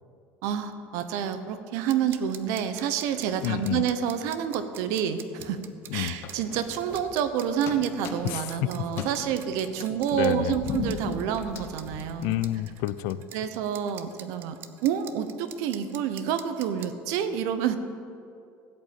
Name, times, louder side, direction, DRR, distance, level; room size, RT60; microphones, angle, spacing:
voice 1, 0.4-5.6 5.9-12.4 13.3-17.8, right 8 dB, 65° right, 10 dB, 0.9 m, -28 dB
sound 1, 1.8-16.9, right 11 dB, 40° right, 0.7 m, -45 dB
voice 2, 3.4-3.9 5.9-6.2 8.2-9.1 10.1-10.6 12.2-13.2, left 14 dB, 70° left, 15 dB, 0.4 m, -29 dB
sound 2, 6.2-7.3 7.6-8.5 8.9-12.6, left 6 dB, 45° left, 1.1 m, -37 dB
16.0 x 5.4 x 8.8 m, 2.5 s
cardioid pair, 165°, 6 cm